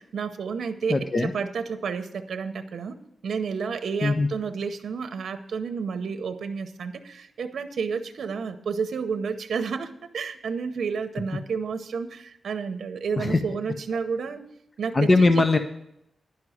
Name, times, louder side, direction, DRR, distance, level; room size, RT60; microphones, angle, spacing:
voice 1, 0.1-14.5 14.8-15.3, right 5 dB, 75° right, 9 dB, 0.7 m, -31 dB
voice 2, 0.9-1.3 4.0-4.3 13.2-13.4 14.9-15.6, left 3 dB, 25° left, 8 dB, 0.6 m, -20 dB
10.5 x 6.0 x 7.9 m, 0.77 s
wide cardioid pair, 170°, 0 cm